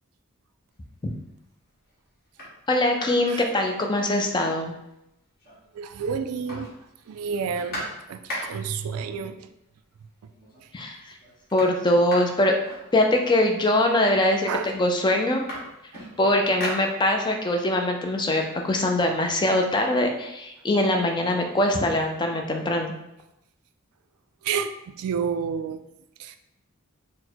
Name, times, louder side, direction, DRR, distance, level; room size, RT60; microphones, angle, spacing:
sound 1, 0.9-1.3 1.8-1.9 2.2-4.3 4.7-4.8 5.0-5.8 6.1-8.8 9.8-9.9 10.3-10.8 11.0-13.4 14.2-14.3 14.6-17.5 17.9-19.6, equal, 45° left, 1.4 m, -39 dB
voice 1, 2.7-4.7 10.7-11.0 11.5-12.6 12.9-15.5 16.2-22.9, left 1 dB, 20° left, 3 dB, 0.4 m, -22 dB
voice 2, 5.7-6.7 7.1-7.8 8.1-9.5 14.5-14.7 15.9-16.0 24.4-25.8 26.2-26.4, right 6 dB, 80° right, 9 dB, 0.3 m, -30 dB
4.3 x 2.1 x 4.3 m, 0.87 s
head